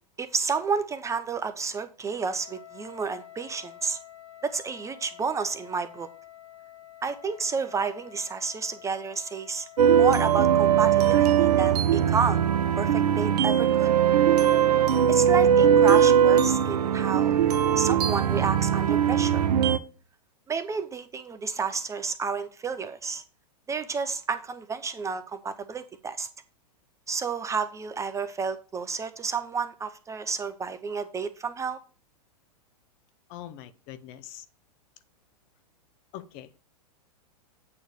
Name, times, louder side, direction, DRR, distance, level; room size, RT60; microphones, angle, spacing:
voice 1, 0.2-4.0 4.4-6.1 7.0-9.7 10.0-12.4 12.8-13.9 15.1-17.3 17.8-19.5 20.5-23.2 23.7-26.3 27.1-31.8, right 5 dB, 15° right, 0.4 m, -30 dB
Wind instrument woodwind instrument, 2.3-11.2, left 12 dB, 35° right, 2.1 m, -49 dB
sound 1, 9.8-19.8, right 9 dB, 75° right, 0.7 m, -20 dB
voice 2, 33.3-34.4 36.1-36.5, left 12 dB, 40° left, 0.7 m, -42 dB
8.6 x 3.1 x 6.5 m
hypercardioid pair, 110°, 20 cm